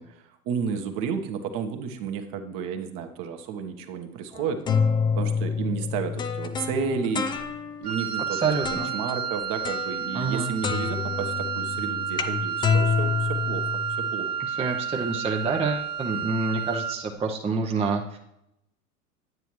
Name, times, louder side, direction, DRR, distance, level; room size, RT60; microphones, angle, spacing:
voice 1, 0.0-4.6 5.2-7.3 7.8-13.8 14.1-14.3, right 6 dB, 45° right, 5 dB, 1.3 m, -32 dB
sound 1, 4.3-7.9 8.6-9.1 9.6-10.4 10.6-14.1, left 6 dB, 10° left, 0.3 m, -28 dB
Wind instrument woodwind instrument, 7.8-17.1, right 7 dB, 90° right, 1.5 m, -31 dB
voice 2, 8.3-8.9 10.1-10.5 14.4-18.2, right 4 dB, 15° right, 1 dB, 0.7 m, -27 dB
9.5 x 9.0 x 3.1 m, 0.83 s
hypercardioid pair, 95°, 44 cm